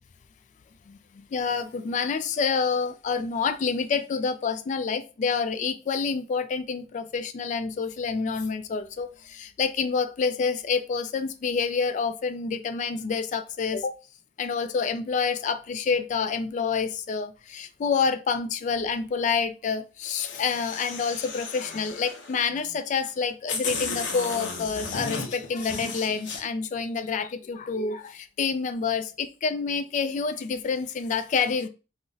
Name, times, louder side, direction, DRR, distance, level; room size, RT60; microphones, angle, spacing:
voice 1, 0.9-13.9 14.4-31.7, left 5 dB, 45° left, 0.3 m, -28 dB
sound 1, 20.1-22.4 23.1-23.2 23.5-26.4, left 4 dB, 85° left, 0.6 m, -34 dB
2.5 x 2.0 x 3.8 m
head